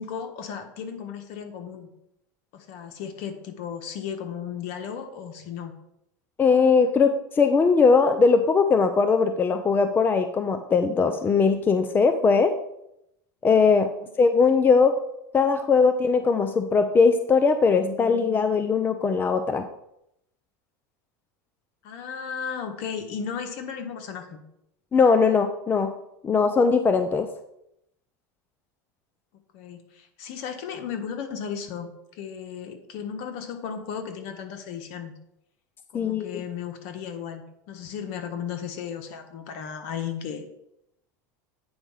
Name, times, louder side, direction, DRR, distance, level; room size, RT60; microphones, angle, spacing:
voice 1, 0.0-1.9 2.5-5.7 13.9-14.1 21.8-24.4 29.5-35.1 35.9-40.4, left 7 dB, 60° left, 7 dB, 1.4 m, -35 dB
voice 2, 6.4-12.5 13.4-13.9 14.2-14.9 15.3-19.7 24.9-25.9 26.2-27.3 35.9-36.3, left 5 dB, 20° left, 9 dB, 0.6 m, -20 dB
8.6 x 4.6 x 5.6 m, 0.80 s
supercardioid pair, 115°, 10 cm